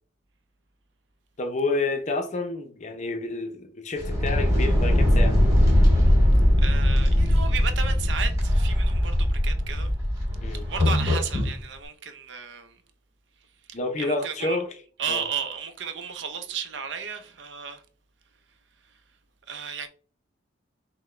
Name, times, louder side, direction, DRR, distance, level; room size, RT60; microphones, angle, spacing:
voice 1, 1.4-5.4 10.4-10.7 13.7-14.8 15.1-15.2, left 2 dB, 35° left, 0.6 m, -29 dB
sound 1, 4.0-11.5, left 1 dB, 15° right, 2.1 m, -21 dB
voice 2, 6.6-9.9 10.7-12.7 13.7-14.6 15.0-17.8 19.5-19.9, right 7 dB, 60° right, 0.6 m, -34 dB
5.8 x 2.1 x 3.2 m
head